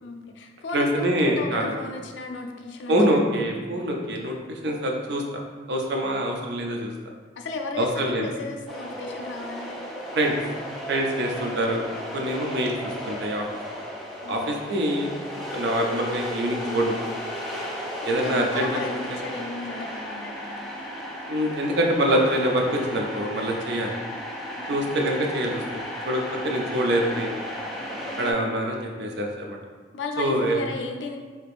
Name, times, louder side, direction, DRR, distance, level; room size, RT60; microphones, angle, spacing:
voice 1, 0.0-3.2 7.4-9.7 14.2-14.6 18.0-20.7 24.5-24.8 29.9-31.2, left 3 dB, 90° left, 3 dB, 0.4 m, -34 dB
voice 2, 0.7-1.8 2.9-5.2 5.7-6.9 7.8-8.3 10.1-10.3 10.9-11.9 12.1-13.4 14.3-17.0 18.0-18.8 19.1-19.2 21.3-23.9 24.7-27.4 28.2-29.6 30.2-30.6, right 1 dB, 65° right, 1 dB, 0.5 m, -25 dB
sound 1, 8.7-28.3, equal, ahead, 0.4 m, -35 dB
2.9 x 2.5 x 3.4 m, 1.4 s
head